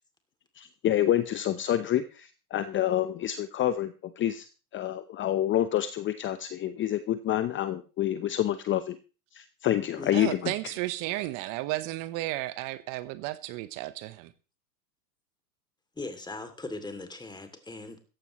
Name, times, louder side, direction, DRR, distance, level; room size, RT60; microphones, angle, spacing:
voice 1, 0.6-4.5 4.7-9.0 9.3-10.5, left 12 dB, 25° left, 0.8 m, -28 dB
voice 2, 10.1-14.3, right 17 dB, 40° right, 1.0 m, -33 dB
voice 3, 16.0-18.0, left 2 dB, 10° left, 2.6 m, -39 dB
16.5 x 14.5 x 3.1 m
hypercardioid pair, 105°, 48 cm